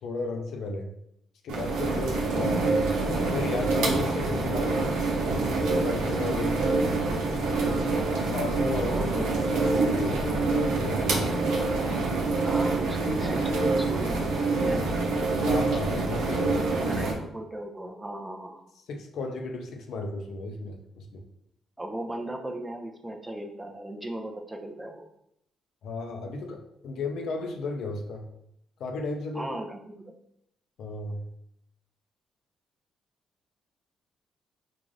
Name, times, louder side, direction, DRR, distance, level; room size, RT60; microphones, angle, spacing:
voice 1, 0.0-0.9 1.4-2.9 3.2-4.9 5.6-6.7 8.2-9.1 9.8-11.2 15.4-16.7 18.9-21.2 25.8-28.2 28.8-29.5 30.8-31.2, left 3 dB, 75° left, 3 dB, 0.5 m, -34 dB
sound 1, 1.5-17.1, right 3 dB, 90° right, 0.6 m, -26 dB
voice 2, 8.9-9.5 12.4-15.0 16.4-18.6 21.8-25.1 29.3-30.1, right 1 dB, 10° right, 2 dB, 0.5 m, -37 dB
3.8 x 2.4 x 3.2 m, 0.75 s
cardioid pair, 90°, 0 cm